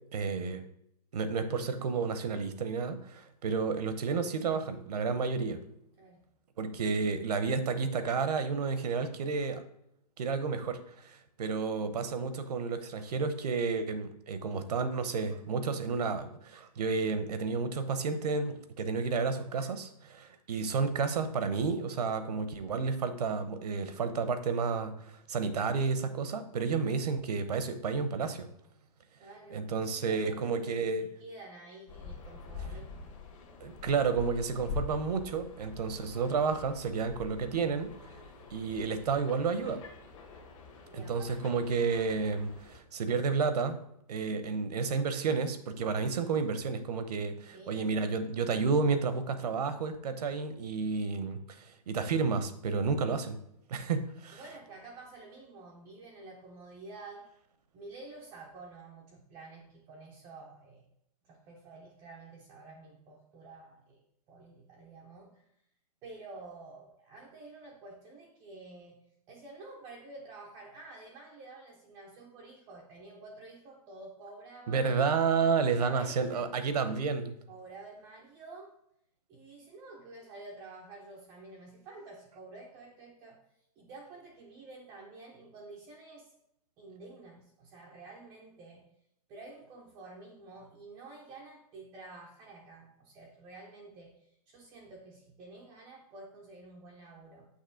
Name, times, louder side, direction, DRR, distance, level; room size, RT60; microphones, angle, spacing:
voice 1, 0.1-0.6 1.1-5.6 6.6-9.6 10.2-28.5 29.5-31.1 33.6-37.9 38.5-39.8 40.9-43.8 44.1-53.4 53.7-54.4 74.7-77.3, right 5 dB, 75° right, 10 dB, 0.8 m, -31 dB
voice 2, 29.2-29.8 30.1-33.1 40.9-41.3 47.5-47.8 54.3-57.3 57.7-60.8 61.2-65.4 66.0-69.0 69.3-74.9 75.7-76.4 77.5-78.7 79.3-83.4 83.8-86.3 86.8-88.9 89.3-94.1 94.5-97.5, right 3 dB, 10° right, -3 dB, 0.4 m, -50 dB
sound 1, 31.9-42.8, left 5 dB, 50° left, 1.4 m, -45 dB
6.5 x 2.9 x 5.7 m, 0.77 s
hypercardioid pair, 170°, 20 cm